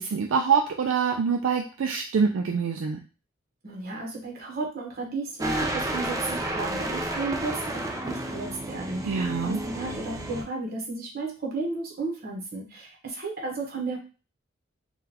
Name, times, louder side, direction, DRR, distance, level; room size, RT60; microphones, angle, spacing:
voice 1, 0.0-3.0 9.0-9.6, right 6 dB, 75° right, 2 dB, 0.4 m, -25 dB
voice 2, 3.6-14.0, right 3 dB, 50° right, -1 dB, 1.1 m, -34 dB
sound 1, 5.4-10.4, right 1 dB, 15° right, 0.5 m, -31 dB
3.8 x 2.3 x 2.8 m, 0.34 s
head